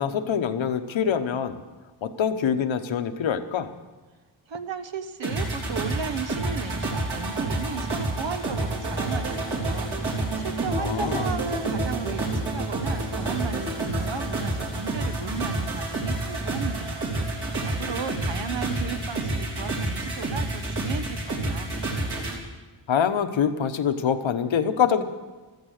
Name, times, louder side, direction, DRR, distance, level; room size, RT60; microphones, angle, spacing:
voice 1, 0.0-1.6 2.0-3.7 10.7-11.3 22.9-25.0, left 7 dB, 80° left, 8 dB, 1.1 m, -25 dB
voice 2, 4.5-21.7, right 6 dB, 75° right, 9 dB, 1.1 m, -35 dB
sound 1, 5.2-22.4, right 2 dB, 55° right, 3.5 m, -29 dB
15.0 x 13.5 x 6.5 m, 1.2 s
wide cardioid pair, 115°, 45 cm